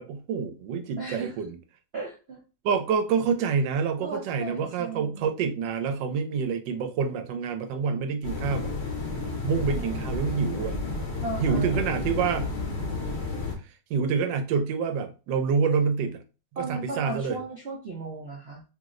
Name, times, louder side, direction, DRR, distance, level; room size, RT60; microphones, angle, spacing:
voice 1, 0.0-1.6 2.6-8.7 9.4-10.8 11.4-12.5 13.9-16.2 16.5-17.4, right 6 dB, 90° right, 1.3 m, -27 dB
voice 2, 1.0-1.3 1.9-2.4 4.0-5.3 9.7-10.1 11.2-11.9 16.6-18.6, right 3 dB, 60° right, 0.6 m, -36 dB
sound 1, 8.2-13.5, left 3 dB, 50° left, 0.9 m, -31 dB
3.1 x 2.0 x 3.6 m
omnidirectional pair, 1.9 m